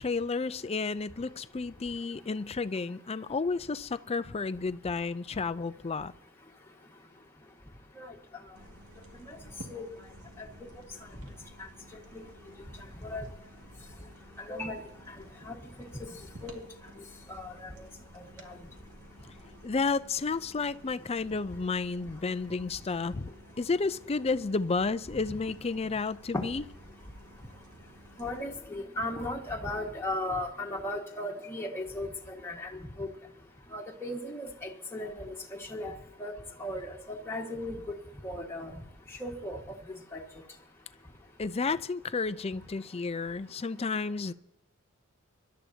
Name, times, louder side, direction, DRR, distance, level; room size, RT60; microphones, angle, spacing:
voice 1, 0.0-6.1 19.6-23.3 23.6-26.6 41.4-44.3, left 4 dB, 30° left, 0.5 m, -31 dB
sound 1, 8.5-28.4, right 1 dB, 85° right, 2.2 m, -53 dB
voice 2, 14.5-14.8 15.4-15.5 16.4-16.6 17.3-17.5 18.4-18.5 26.3-26.4 28.2-33.1 33.7-35.3 35.7-35.9 36.2-36.3 36.6-37.0 37.3-37.8 38.2-38.7 39.2-39.6 40.1-40.2, left 1 dB, 10° left, 1.7 m, -36 dB
25.0 x 12.5 x 2.8 m
head